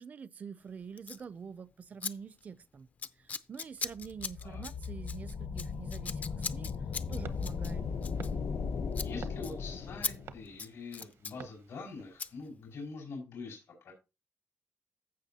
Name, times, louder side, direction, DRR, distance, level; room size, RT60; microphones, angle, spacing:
voice 1, 0.0-2.9 3.1-7.9, right 6 dB, 35° right, 0.4 m, -46 dB
Scissors, 1.0-1.2 2.0-2.1 2.4-2.6 3.0-8.7 8.9-9.1 9.4-9.5 10.0-10.1 10.5-11.4 12.2-12.3, left 5 dB, 35° left, 0.4 m, -39 dB
sound 1, 4.0-10.5, left 5 dB, 60° left, 0.9 m, -37 dB
sound 2, 7.2-12.4, right 7 dB, 70° right, 0.7 m, -52 dB
voice 2, 9.0-13.9, left 4 dB, 85° left, 4.8 m, -44 dB
15.0 x 5.8 x 2.8 m
wide cardioid pair, 175°, 5 cm